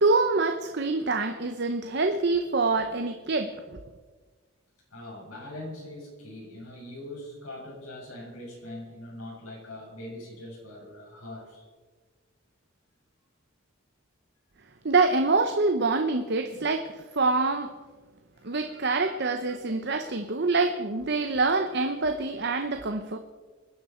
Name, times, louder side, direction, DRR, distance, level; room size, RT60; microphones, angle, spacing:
voice 1, 0.0-3.5 14.8-16.8 17.1-17.7 18.4-23.2, right 3 dB, 50° right, 7 dB, 0.8 m, -25 dB
voice 2, 4.9-11.7 16.5-16.7 18.3-19.0, left 1 dB, 80° left, -3 dB, 6.5 m, -42 dB
26.5 x 10.0 x 4.4 m, 1.4 s
head